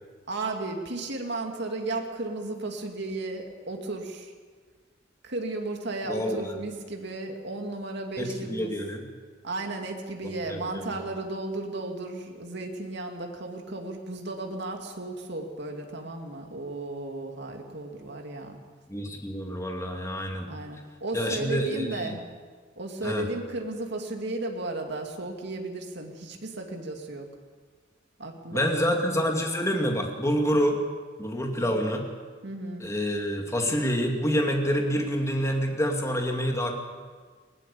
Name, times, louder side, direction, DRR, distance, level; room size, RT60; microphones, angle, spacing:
voice 1, 0.3-4.3 5.2-8.7 9.4-18.6 20.5-22.2 22.8-27.3 28.2-28.8 31.6-31.8 32.4-32.9, right 2 dB, 65° right, 3 dB, 2.5 m, -34 dB
voice 2, 6.0-6.4 8.2-9.0 10.2-10.9 18.9-20.5 21.1-22.1 23.0-23.3 28.5-30.8 31.2-32.0 32.8-36.7, equal, 15° left, 2 dB, 2.4 m, -27 dB
20.5 x 17.5 x 7.1 m, 1.5 s
head